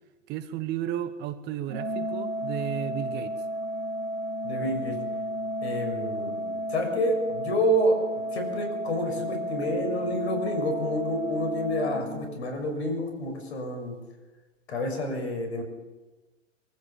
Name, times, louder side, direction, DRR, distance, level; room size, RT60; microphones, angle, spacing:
voice 1, 0.3-3.5, right 11 dB, 30° right, 12 dB, 1.2 m, -33 dB
Organ, 1.7-12.7, equal, 90° right, 1.6 m, -33 dB
voice 2, 4.4-5.0 5.6-8.0 8.3-14.0 14.7-15.6, equal, 60° left, 5 dB, 6.4 m, -29 dB
24.5 x 15.0 x 7.3 m, 1.2 s
figure-of-eight pair, 105°, 37 cm